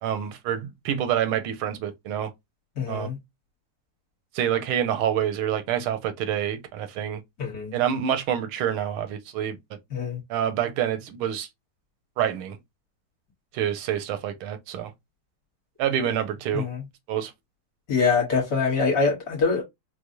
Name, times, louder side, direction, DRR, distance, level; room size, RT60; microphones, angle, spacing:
voice 1, 0.0-2.3 2.9-3.1 4.3-7.2 7.7-9.6 10.3-11.5 12.2-12.6 13.5-14.9 15.8-16.7 17.1-17.3, right 9 dB, 85° right, 1.5 m, -27 dB
voice 2, 2.8-3.2 7.4-7.7 9.9-10.2 16.5-16.8 17.9-19.6, left 4 dB, 50° left, 1.5 m, -24 dB
4.8 x 2.0 x 2.6 m
omnidirectional pair, 2.3 m